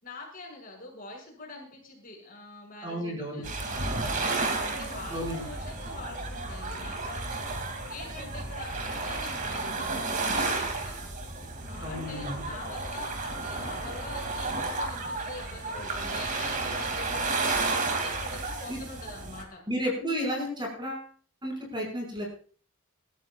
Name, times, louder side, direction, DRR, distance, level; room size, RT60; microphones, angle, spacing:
voice 1, 0.0-4.2 4.6-7.5 7.9-11.0 11.7-17.5 17.9-19.6, left 2 dB, 40° left, -1 dB, 6.2 m, -44 dB
voice 2, 2.8-3.4 5.1-5.4 11.8-12.4 18.7-18.8 19.7-21.1 21.4-22.3, equal, 20° right, 0 dB, 5.9 m, -32 dB
sound 1, 3.4-19.4, right 3 dB, 40° right, 2.7 m, -32 dB
26.0 x 13.5 x 2.5 m, 0.43 s
head